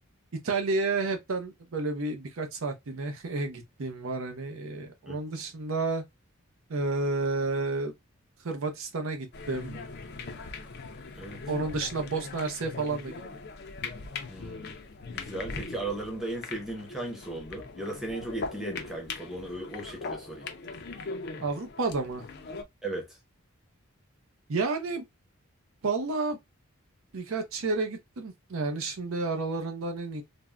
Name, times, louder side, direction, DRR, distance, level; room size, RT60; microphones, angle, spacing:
voice 1, 0.4-6.0 6.7-7.9 8.4-9.8 11.5-13.2 21.4-22.3 24.5-25.0 25.8-26.4 27.1-30.2, right 3 dB, 70° right, 0.6 m, -31 dB
sound 1, 9.3-22.6, left 4 dB, 45° left, 0.4 m, -40 dB
voice 2, 14.3-14.7 15.1-20.5 22.8-23.2, right 2 dB, ahead, 0.7 m, -37 dB
3.4 x 2.1 x 2.3 m
head